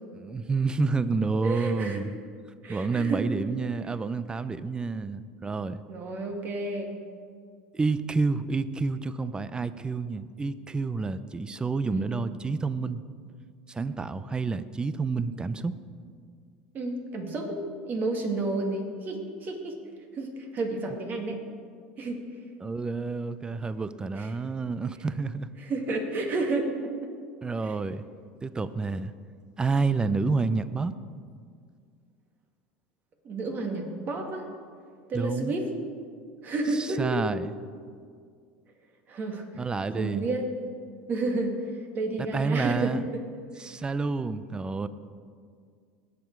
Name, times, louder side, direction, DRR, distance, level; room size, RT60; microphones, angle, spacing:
voice 1, 0.1-2.1 2.7-5.8 7.7-13.0 13.7-15.7 22.6-25.5 27.4-28.0 28.4-29.1 29.6-30.9 35.1-35.5 36.7-37.5 39.5-40.3 42.2-43.1 43.6-44.9, right 4 dB, 20° right, 15 dB, 0.6 m, -29 dB
voice 2, 1.4-2.0 2.6-3.3 5.9-7.0 11.3-11.4 11.9-12.1 16.7-17.6 17.8-19.8 20.1-21.4 22.0-22.2 24.1-24.3 25.6-27.1 27.6-27.8 33.2-34.4 35.1-35.7 36.4-37.2 39.1-40.5 41.1-42.9 43.6-43.7, right 2 dB, 40° right, 3 dB, 2.2 m, -31 dB
19.0 x 7.4 x 4.7 m, 2.1 s
hypercardioid pair, 85°, 5 cm